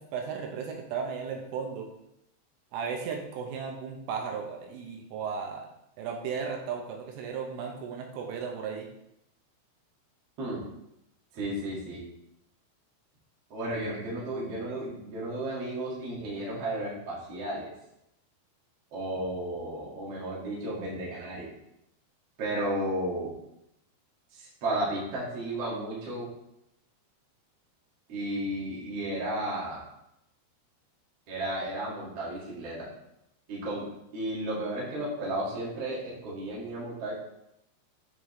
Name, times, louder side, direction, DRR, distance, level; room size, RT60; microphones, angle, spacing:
voice 1, 0.0-1.9 2.7-5.7 6.0-8.9, right 6 dB, 80° right, 1 dB, 3.2 m, -35 dB
voice 2, 11.3-12.0 13.5-17.7 18.9-21.5 22.4-23.3 24.3-26.3 28.1-29.8 31.3-32.9 33.5-33.9 34.1-37.1, right 1 dB, 60° right, -6 dB, 1.6 m, -33 dB
8.4 x 4.4 x 3.1 m, 0.82 s
omnidirectional pair, 6.0 m